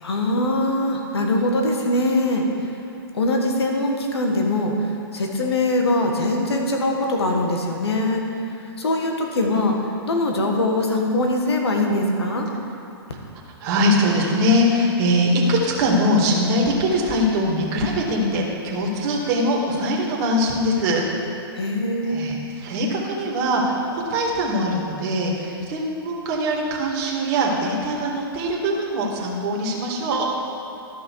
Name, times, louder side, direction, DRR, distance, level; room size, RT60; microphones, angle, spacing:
voice 1, 0.0-2.5 3.1-8.3 8.8-9.8 10.1-12.5 21.5-22.3, left 1 dB, 85° left, 2 dB, 1.5 m, -22 dB
voice 2, 13.6-21.0 22.1-23.8 24.1-30.3, equal, 45° right, -2 dB, 1.9 m, -22 dB
12.5 x 6.0 x 4.6 m, 2.8 s
hypercardioid pair, 135°, 13 cm